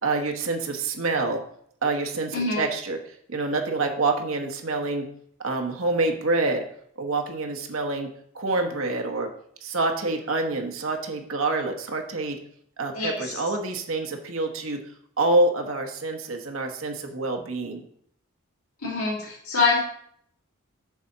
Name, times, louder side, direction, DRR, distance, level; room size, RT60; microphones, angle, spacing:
voice 1, 0.0-1.4 1.8-3.0 3.3-5.0 5.4-6.6 7.0-8.1 8.3-9.3 9.6-12.4 12.8-14.8 15.2-17.8, right 2 dB, 70° right, 3 dB, 1.2 m, -26 dB
voice 2, 2.3-2.6 12.9-13.4 18.8-19.8, left 3 dB, 80° left, -4 dB, 3.2 m, -25 dB
7.1 x 4.2 x 6.6 m, 0.66 s
head